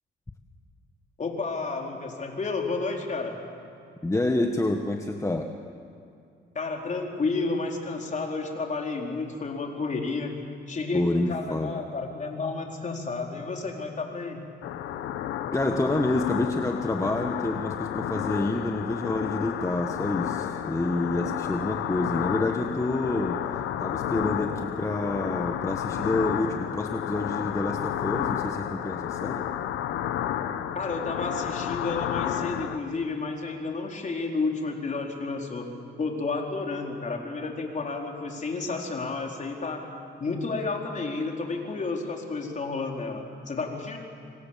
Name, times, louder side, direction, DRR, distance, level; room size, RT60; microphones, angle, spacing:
voice 1, 1.2-3.4 6.5-10.4 10.7-14.4 30.7-39.8 40.2-44.0, left 3 dB, 40° left, 1 dB, 4.3 m, -31 dB
voice 2, 4.0-5.5 10.9-11.7 15.5-23.5 23.8-29.4, left 2 dB, 15° left, 4 dB, 1.4 m, -28 dB
sound 1, 14.6-32.8, left 10 dB, 90° left, 1.2 m, -31 dB
25.5 x 25.5 x 7.5 m, 2.4 s
cardioid pair, 90°, 20 cm